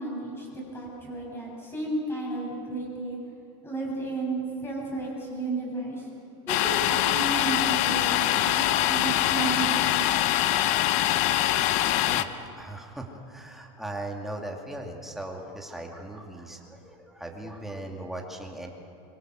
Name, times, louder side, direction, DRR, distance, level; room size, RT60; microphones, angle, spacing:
voice 1, 0.0-3.2 3.6-6.1 6.5-10.6, right 3 dB, 15° left, -2 dB, 7.8 m, -33 dB
Domestic sounds home sounds, 6.5-12.2, left 13 dB, 45° left, 0.9 m, -24 dB
voice 2, 12.0-18.7, right 1 dB, ahead, 0 dB, 2.4 m, -39 dB
24.5 x 23.5 x 6.3 m, 2.6 s
supercardioid pair, 150°, 16 cm